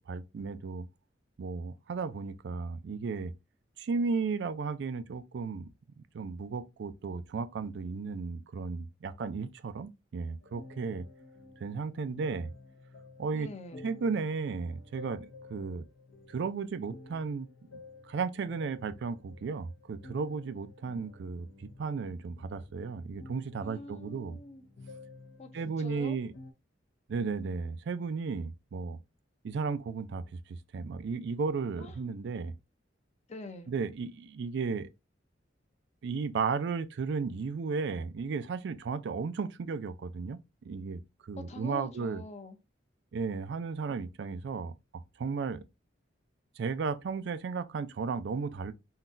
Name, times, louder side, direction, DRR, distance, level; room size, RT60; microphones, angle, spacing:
voice 1, 0.1-0.9 1.4-3.3 3.8-5.7 6.0-11.1 11.6-12.5 13.2-13.5 13.8-15.8 16.3-17.5 18.1-24.4 25.5-26.3 27.1-29.0 29.4-30.2 30.7-32.5 33.7-34.9 36.0-42.2 43.1-44.7 45.2-45.6 46.6-48.7, right 5 dB, 65° right, 0.4 m, -34 dB
sound 1, 10.4-26.5, left 3 dB, 90° left, 0.7 m, -52 dB
voice 2, 13.3-13.9 23.6-24.6 25.4-26.2 31.8-32.0 33.3-33.7 41.5-42.6, left 2 dB, 35° left, 0.5 m, -45 dB
3.8 x 2.3 x 2.5 m
head